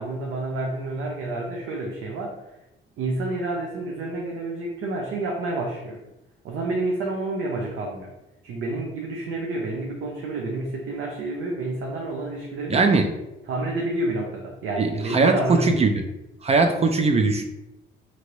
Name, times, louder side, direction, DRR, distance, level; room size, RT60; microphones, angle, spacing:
voice 1, 0.0-2.3 3.0-6.0 6.4-8.1 8.4-12.8 13.5-15.9, right 2 dB, 80° right, 0 dB, 0.6 m, -29 dB
voice 2, 12.7-13.1 14.8-16.0 16.4-17.4, right 3 dB, 30° right, 5 dB, 0.4 m, -20 dB
2.9 x 2.5 x 3.0 m, 0.92 s
cardioid pair, 90°, 20 cm